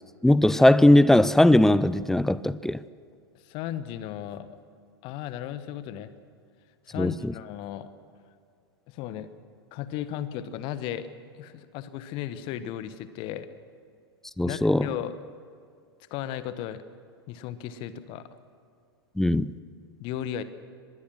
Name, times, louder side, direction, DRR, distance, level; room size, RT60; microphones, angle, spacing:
voice 1, 0.2-2.8 7.0-7.3 14.4-14.9 19.2-19.5, left 1 dB, 5° left, 0.5 m, -19 dB
voice 2, 3.4-4.5 5.0-6.1 6.9-7.9 8.9-9.3 9.7-11.1 11.4-13.5 14.4-15.1 16.1-16.8 17.3-18.3 20.0-20.4, left 11 dB, 40° left, 1.2 m, -35 dB
24.5 x 20.5 x 6.2 m
figure-of-eight pair, 90°, 13 cm